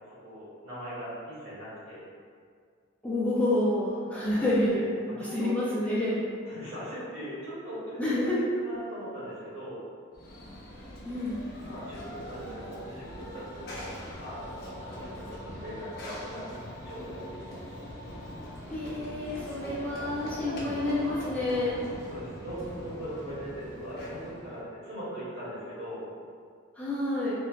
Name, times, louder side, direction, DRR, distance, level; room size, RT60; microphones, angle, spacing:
voice 1, 0.1-2.0 4.3-6.0 6.4-9.8 11.6-16.5 16.8-17.4 21.9-26.0, equal, 75° right, -10 dB, 1.2 m, -40 dB
voice 2, 3.0-4.8 5.2-6.2 8.0-8.4 11.0-11.4 18.6-21.8 26.8-27.3, left 1 dB, 5° left, -8 dB, 0.4 m, -28 dB
Run / Train, 10.1-24.6, equal, 50° left, 0.7 m, -42 dB
3.1 x 2.1 x 2.3 m, 2.1 s
head